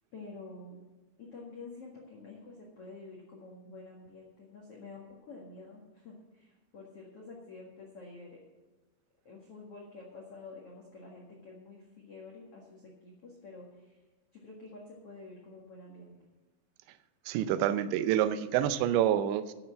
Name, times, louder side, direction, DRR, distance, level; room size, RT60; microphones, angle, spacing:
voice 1, 0.1-0.8 1.2-8.4 9.2-14.0 14.3-16.2, left 3 dB, 55° left, -2 dB, 1.6 m, -49 dB
voice 2, 17.3-19.5, right 11 dB, 80° right, 11 dB, 2.8 m, -27 dB
12.0 x 7.1 x 7.4 m, 1.2 s
omnidirectional pair, 5.5 m